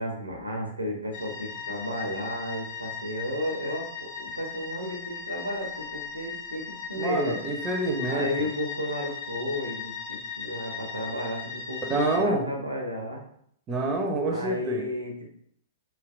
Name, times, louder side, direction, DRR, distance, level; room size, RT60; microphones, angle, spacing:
voice 1, 0.0-7.4 8.1-13.2 14.2-15.3, equal, 85° right, 1 dB, 0.7 m, -33 dB
sound 1, 1.1-12.2, left 6 dB, 45° left, 0.5 m, -38 dB
voice 2, 7.0-8.5 11.9-12.4 13.7-14.8, right 2 dB, 25° right, 3 dB, 0.5 m, -27 dB
3.2 x 2.8 x 2.4 m, 0.68 s
figure-of-eight pair, 105°, 0 cm